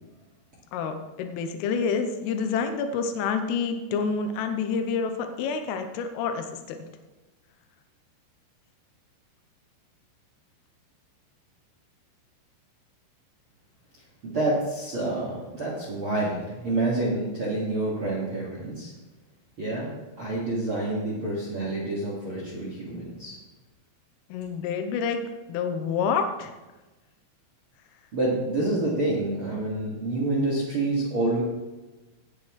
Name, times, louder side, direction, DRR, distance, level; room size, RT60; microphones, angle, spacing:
voice 1, 0.7-6.8 24.3-25.2 25.5-26.5, left 5 dB, 90° left, 6 dB, 3.3 m, -28 dB
voice 2, 14.2-18.9 19.6-23.3 28.1-31.4, right 2 dB, 55° right, -4 dB, 1.4 m, -28 dB
17.5 x 8.6 x 3.2 m, 1.1 s
omnidirectional pair, 5.8 m